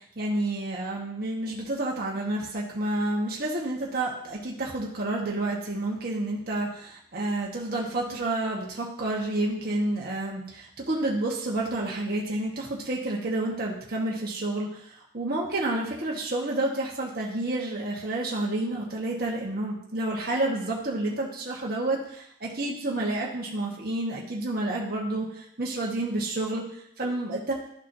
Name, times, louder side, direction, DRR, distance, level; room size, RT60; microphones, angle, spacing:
voice 1, 0.0-27.5, right 2 dB, 50° right, -3 dB, 1.2 m, -30 dB
12.5 x 4.4 x 2.6 m, 0.71 s
head